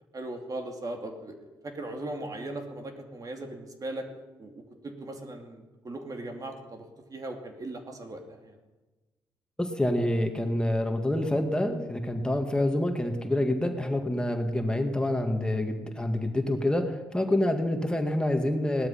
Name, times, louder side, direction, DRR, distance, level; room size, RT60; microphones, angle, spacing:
voice 1, 0.1-1.4 1.6-4.1 4.4-6.8 7.1-8.6, right 2 dB, 45° right, 3 dB, 2.7 m, -38 dB
voice 2, 9.6-18.9, left 1 dB, 10° left, 4 dB, 2.0 m, -27 dB
18.0 x 12.0 x 5.8 m, 1.2 s
supercardioid pair, 55°, 9 cm